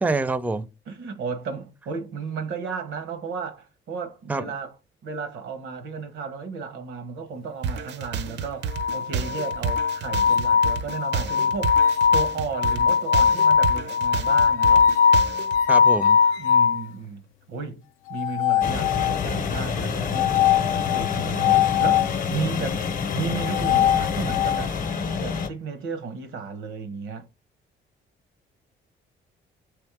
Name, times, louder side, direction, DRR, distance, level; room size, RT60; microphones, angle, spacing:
voice 1, 0.0-0.7 4.3-4.4 15.7-16.2, right 3 dB, 10° right, 0.4 m, -25 dB
voice 2, 0.9-4.8 5.0-11.8 12.1-14.9 16.4-17.2 17.5-17.8 18.1-22.9 23.1-24.7 25.2-27.3, right 5 dB, 85° right, 1.0 m, -34 dB
sound 1, 7.6-15.6, right 6 dB, 60° right, 0.5 m, -31 dB
sound 2, 8.7-16.8 18.1-19.4 20.1-22.1 23.3-24.7, left 7 dB, 85° left, 0.4 m, -21 dB
sound 3, 18.6-25.5, left 6 dB, 45° left, 0.7 m, -28 dB
3.5 x 3.2 x 4.6 m
cardioid pair, 90°, 20 cm